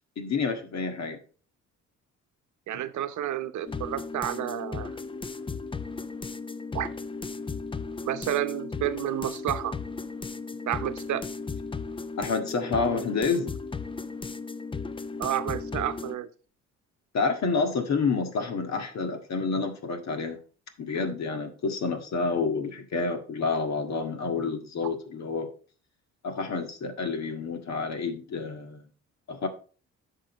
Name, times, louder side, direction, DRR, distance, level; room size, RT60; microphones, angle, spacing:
voice 1, 0.2-1.2 12.2-13.5 17.1-20.4 20.8-25.5 26.2-28.8 29.3-29.5, left 4 dB, 60° left, 1.8 m, -29 dB
voice 2, 2.7-4.9 6.7-6.9 8.0-9.7 10.7-11.2 15.2-16.3 24.8-24.9, right 12 dB, 75° right, 0.9 m, -30 dB
sound 1, 3.7-16.2, left 4 dB, 15° left, 0.5 m, -36 dB
10.5 x 6.4 x 3.1 m
cardioid pair, 90°, 30 cm